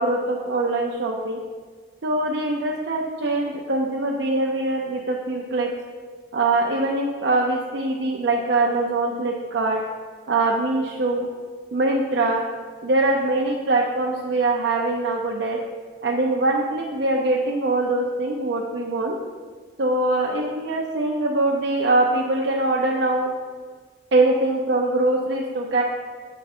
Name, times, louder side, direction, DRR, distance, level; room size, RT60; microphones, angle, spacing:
voice 1, 0.0-1.4 2.0-5.7 6.3-9.8 10.3-11.3 11.7-12.4 12.8-15.6 16.0-19.2 19.8-23.3 24.1-25.8, right 2 dB, 80° right, -1 dB, 0.5 m, -23 dB
8.0 x 3.3 x 4.2 m, 1.5 s
head